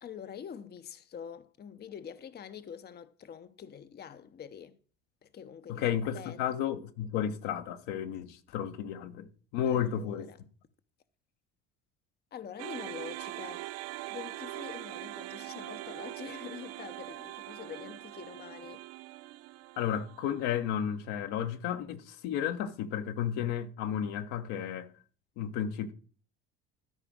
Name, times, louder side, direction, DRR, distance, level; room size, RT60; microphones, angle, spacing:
voice 1, 0.0-4.8 5.2-6.4 9.7-10.4 12.3-13.7 14.1-18.8, left 8 dB, 30° left, 0.8 m, -45 dB
voice 2, 5.7-10.3 19.8-24.9 25.4-25.9, left 9 dB, 70° left, 1.2 m, -33 dB
sound 1, 12.6-20.9, right 17 dB, 55° right, 0.4 m, -42 dB
12.5 x 5.0 x 6.2 m
hypercardioid pair, 70°, 31 cm